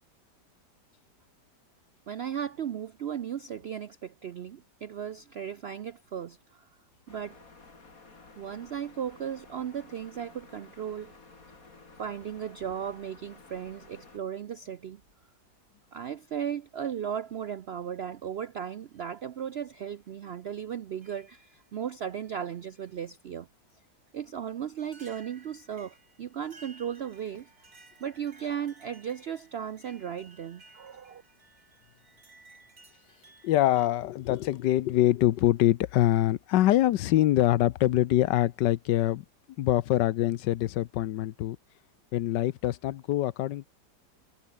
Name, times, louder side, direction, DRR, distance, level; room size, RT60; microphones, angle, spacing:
voice 1, 2.1-6.7 7.1-7.4 8.4-11.2 12.0-15.0 15.9-23.5 24.1-27.5 28.0-31.2, right 8 dB, 85° right, 0.5 m, -36 dB
sound 1, 7.1-14.2, left 3 dB, 50° left, 3.8 m, -53 dB
sound 2, 15.0-15.8 16.9-17.0 18.0-18.3 18.9-19.1 19.8-19.9 21.0-21.7 22.2-23.0 24.1-24.2 24.8-33.9, right 3 dB, 60° right, 4.8 m, -57 dB
voice 2, 33.4-39.2 39.6-41.6 42.1-43.7, left 14 dB, 90° left, 1.4 m, -24 dB
omnidirectional pair, 1.9 m